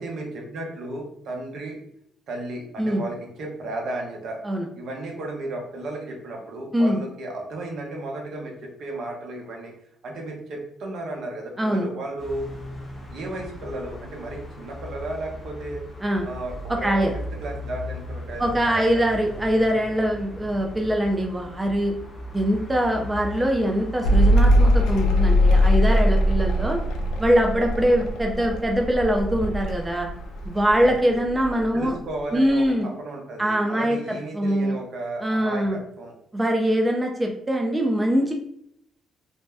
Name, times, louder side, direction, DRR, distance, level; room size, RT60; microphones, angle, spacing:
voice 1, 0.0-1.8 2.3-4.4 4.7-9.7 10.0-12.5 13.1-15.8 16.2-17.1 17.4-19.0 30.7-31.2 31.7-36.1, right 2 dB, 70° right, 0 dB, 0.8 m, -34 dB
voice 2, 11.6-11.9 16.0-16.3 16.7-17.1 18.4-21.9 22.3-26.8 27.2-30.1 30.4-32.0 32.3-32.9 33.4-34.8 35.2-35.8 36.3-38.3, equal, 15° right, 1 dB, 0.4 m, -23 dB
sound 1, 12.2-30.9, right 1 dB, 30° left, 0.7 m, -38 dB
Mechanical fan, 24.0-30.9 31.2-32.0, equal, 85° left, 0.4 m, -20 dB
2.6 x 2.1 x 3.3 m, 0.71 s
cardioid pair, 90°, 0 cm